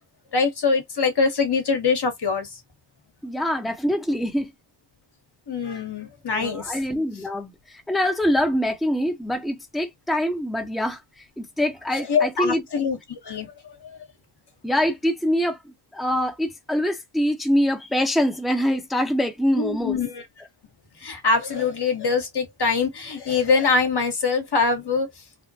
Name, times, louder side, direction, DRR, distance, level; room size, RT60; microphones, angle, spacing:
voice 1, 0.3-2.6 5.5-6.8 11.9-13.5 13.8-14.0 19.6-20.2 21.0-25.1, left 4 dB, 55° left, 1.2 m, -23 dB
voice 2, 3.2-4.5 6.3-11.0 11.4-12.6 14.6-20.0, equal, ahead, 0.8 m, -24 dB
3.3 x 2.2 x 2.7 m
cardioid pair, 60°, 48 cm